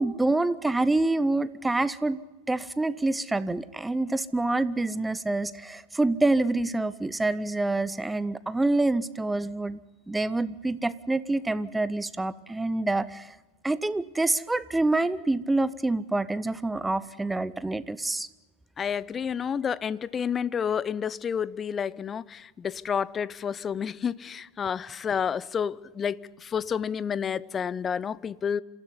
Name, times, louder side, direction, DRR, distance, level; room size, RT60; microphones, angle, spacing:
voice 1, 0.0-2.2 2.5-9.8 10.1-13.3 13.6-18.3, right 2 dB, 10° right, 0.9 m, -26 dB
voice 2, 18.8-28.6, left 7 dB, 25° left, 0.7 m, -30 dB
27.0 x 15.0 x 9.8 m
figure-of-eight pair, 90°, 0 cm